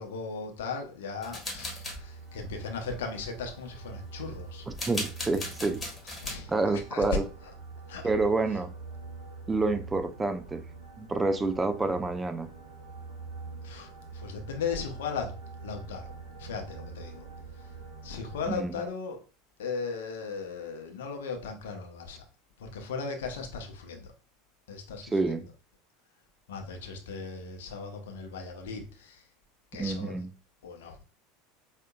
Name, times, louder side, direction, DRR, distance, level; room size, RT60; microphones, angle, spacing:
voice 1, 0.0-4.7 6.0-7.0 7.9-8.1 13.6-15.3 15.6-17.3 18.0-19.2 19.6-22.2 22.6-24.1 24.7-25.1 26.5-29.2 29.7-30.3 30.6-31.0, left 5 dB, 65° left, 0.8 m, -37 dB
sound 1, 1.2-2.0 4.7-6.4, left 1 dB, 15° left, 1.4 m, -37 dB
sound 2, 1.5-18.6, right 4 dB, 55° right, 0.9 m, -45 dB
voice 2, 4.9-5.8 6.5-7.2 8.0-8.7 9.5-10.6 11.0-12.5 18.5-18.8 25.1-25.5 29.8-30.3, right 3 dB, 15° right, 0.4 m, -28 dB
4.9 x 2.7 x 2.2 m
figure-of-eight pair, 75°, 0 cm